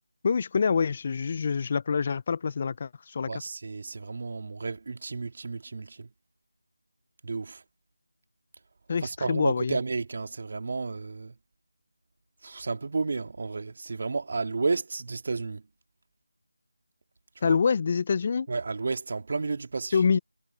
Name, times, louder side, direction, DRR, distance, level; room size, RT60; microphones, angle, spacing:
voice 1, 0.2-3.3 8.9-9.8 17.4-18.5 19.9-20.2, left 5 dB, 30° left, 0.8 m, -26 dB
voice 2, 3.2-6.1 7.2-7.6 9.0-11.4 12.4-15.6 17.4-17.6 18.5-20.1, right 4 dB, 45° right, 2.2 m, -32 dB
figure-of-eight pair, 165°, 0 cm